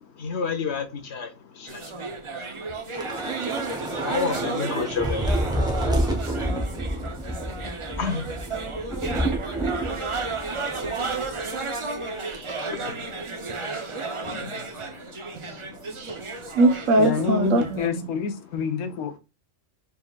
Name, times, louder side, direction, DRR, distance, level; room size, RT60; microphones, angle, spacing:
voice 1, 0.2-1.3 1.6-1.8 4.0-5.4 8.0-8.3 12.7-12.9 14.2-14.6, left 5 dB, 55° left, 1.1 m, -29 dB
sound 1, 1.7-17.9, right 3 dB, 50° right, 0.3 m, -33 dB
Thunder / Rain, 2.9-11.5 11.8-12.0 12.3-12.6, right 1 dB, 5° right, 0.8 m, -29 dB
voice 2, 12.2-12.6 13.6-13.9 16.0-16.2 16.5-17.6 17.9-18.0, right 2 dB, 65° right, 1.2 m, -22 dB
voice 3, 17.0-19.2, left 7 dB, 85° left, 1.2 m, -28 dB
4.3 x 3.6 x 2.3 m
omnidirectional pair, 1.5 m